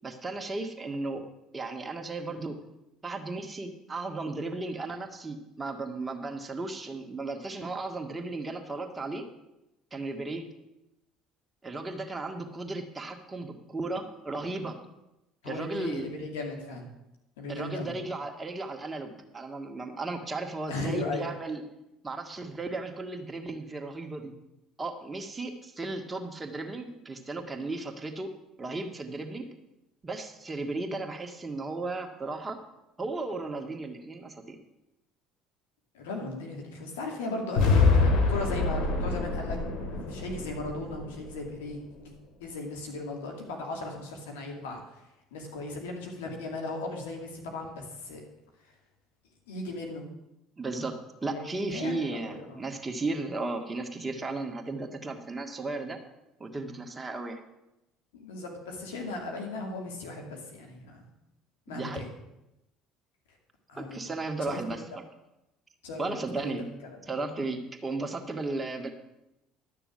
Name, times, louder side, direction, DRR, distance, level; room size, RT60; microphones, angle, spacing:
voice 1, 0.0-1.2 1.5-2.6 3.0-9.2 9.9-10.5 11.6-14.8 15.4-16.1 17.5-21.6 22.0-24.3 24.8-28.3 28.6-29.5 30.0-32.6 33.0-34.6 50.6-50.9 51.2-56.0 56.4-57.4 61.7-62.0 63.8-64.8 66.0-66.6 67.0-68.9, right 3 dB, 20° right, 4 dB, 1.8 m, -35 dB
voice 2, 15.4-16.9 17.4-18.0 20.7-21.3 35.9-39.6 39.9-42.1 42.4-44.8 45.3-48.2 49.5-50.0 51.3-52.6 58.1-61.0 61.7-62.1 63.7-64.0 64.5-64.8 65.8-66.1 66.4-67.0, left 2 dB, 90° left, 1 dB, 2.6 m, -37 dB
sound 1, 37.6-41.7, left 4 dB, 70° left, 2.1 m, -26 dB
12.0 x 6.7 x 7.7 m, 0.92 s
hypercardioid pair, 75°, 0 cm